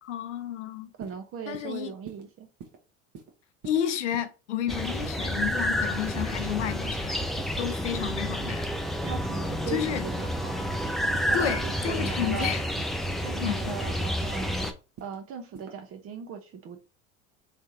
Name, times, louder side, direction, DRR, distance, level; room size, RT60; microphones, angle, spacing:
voice 1, 0.0-0.9 1.5-1.9 3.6-7.2 7.6-8.7 9.7-10.1 11.3-12.6 13.4-13.8, left 10 dB, 90° left, 0.6 m, -31 dB
voice 2, 1.0-2.5 9.0-10.6 11.2-12.6 13.2-14.6 15.0-16.8, right 7 dB, 40° right, 0.8 m, -38 dB
sound 1, 1.0-1.2 1.5-1.7 2.1-2.2 2.6-2.8 3.1-3.3 3.6-3.8 4.1-4.3 4.7-4.9 5.2-5.4 5.8-5.9 6.3-6.4 6.8-7.0 7.4-7.5 7.9-8.1 8.5-8.7 9.0-9.2 9.5-9.7 10.1-10.3 10.6-10.8 11.1-11.3 11.7-11.9 12.2-12.4 12.8-12.9 13.3-13.5 13.9-14.1 14.4-14.6 15.0-15.2 15.5-15.7, right 6 dB, 55° right, 1.3 m, -44 dB
sound 2, 4.7-14.7, equal, ahead, 0.4 m, -30 dB
3.4 x 3.3 x 2.7 m
hypercardioid pair, 85°, 34 cm